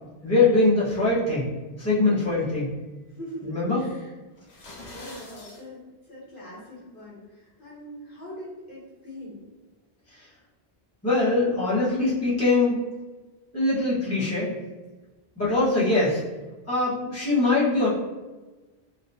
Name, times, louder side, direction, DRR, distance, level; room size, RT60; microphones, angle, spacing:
voice 1, 0.0-1.5 1.8-2.7 3.4-3.8 11.0-12.8 13.5-14.5 15.4-16.2 16.7-17.9, left 2 dB, 15° left, -10 dB, 1.1 m, -22 dB
voice 2, 3.1-3.5 3.8-4.1 4.5-5.8 6.1-9.4, equal, 55° left, -7 dB, 1.1 m, -42 dB
sound 1, 4.4-5.6, left 2 dB, 75° left, 1.2 m, -44 dB
3.2 x 2.9 x 2.7 m, 1.2 s
omnidirectional pair, 1.1 m